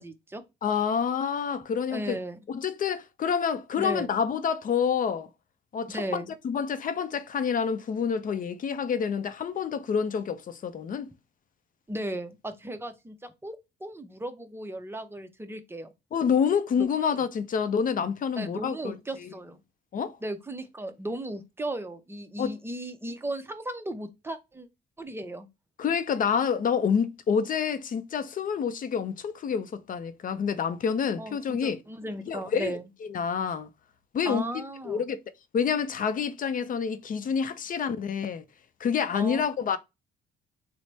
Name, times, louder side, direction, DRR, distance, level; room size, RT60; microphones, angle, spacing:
voice 1, 0.0-0.4 1.9-2.4 3.8-4.1 5.9-6.3 11.9-15.9 16.8-17.2 18.4-19.6 20.2-24.7 25.0-25.5 31.2-32.8 34.2-35.1 39.1-39.4, right 1 dB, 10° right, 0.5 m, -36 dB
voice 2, 0.6-2.2 2.5-5.3 5.7-11.1 16.1-19.3 19.9-20.2 22.4-22.6 25.8-31.8 32.3-33.7 34.1-35.2 35.5-38.4 38.8-39.8, left 7 dB, 45° left, 0.5 m, -28 dB
3.1 x 2.0 x 4.1 m
cardioid pair, 90°, 20 cm